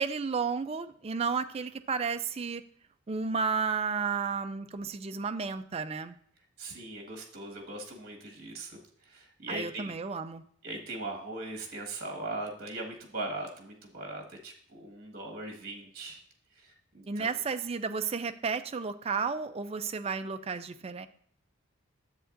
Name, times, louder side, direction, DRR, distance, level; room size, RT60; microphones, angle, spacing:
voice 1, 0.0-2.6 3.1-6.2 9.5-10.4 17.1-21.1, right 5 dB, 30° right, 9 dB, 0.3 m, -32 dB
voice 2, 6.6-8.8 9.1-10.0 10.6-16.2 16.6-17.4, right 2 dB, 45° right, 1 dB, 1.6 m, -40 dB
10.0 x 7.8 x 2.5 m, 0.62 s
head